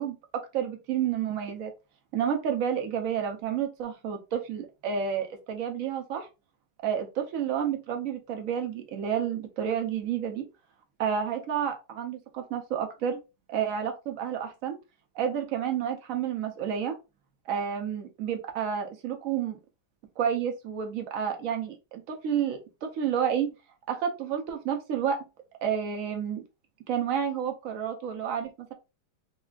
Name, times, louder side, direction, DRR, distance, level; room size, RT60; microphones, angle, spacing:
voice 1, 0.0-1.7 2.1-6.3 6.8-10.4 11.0-13.2 13.5-14.8 15.1-17.0 17.5-19.6 20.2-23.5 23.9-25.2 25.6-26.4 26.9-28.7, right 8 dB, 70° right, 5 dB, 0.8 m, -30 dB
4.0 x 2.2 x 2.3 m, 0.28 s
omnidirectional pair, 1.9 m